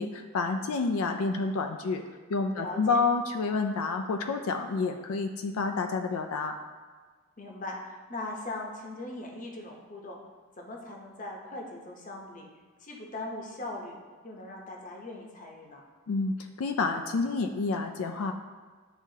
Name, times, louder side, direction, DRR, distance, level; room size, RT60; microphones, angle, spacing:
voice 1, 0.0-2.0 2.3-6.6 16.1-18.3, left 4 dB, 90° left, 6 dB, 0.4 m, -29 dB
voice 2, 2.5-3.0 7.4-10.2 10.6-12.5 12.8-14.0 14.2-15.8, left 2 dB, 35° left, 0 dB, 0.8 m, -40 dB
9.8 x 3.5 x 2.8 m, 1.4 s
head